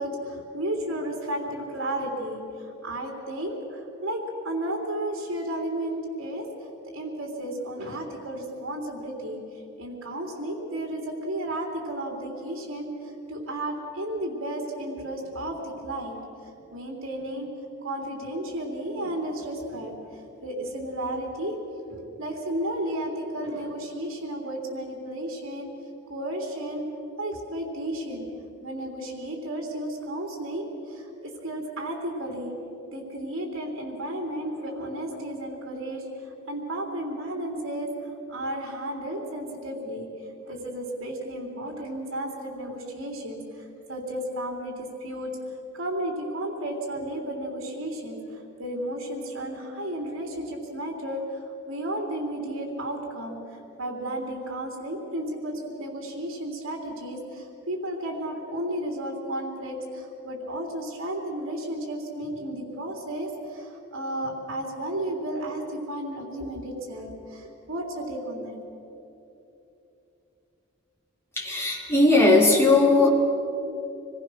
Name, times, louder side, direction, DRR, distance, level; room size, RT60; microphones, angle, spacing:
voice 1, 0.0-6.5 6.9-9.4 9.8-16.2 16.7-17.5 17.8-21.5 21.9-25.7 26.1-26.8 27.2-28.3 28.6-32.5 32.9-37.9 38.3-40.1 40.5-45.3 45.7-53.4 53.8-68.6, right 1 dB, 70° right, 0 dB, 3.4 m, -33 dB
voice 2, 71.4-73.1, left 2 dB, 10° left, -4 dB, 4.0 m, -18 dB
26.0 x 21.0 x 6.3 m, 2.9 s
head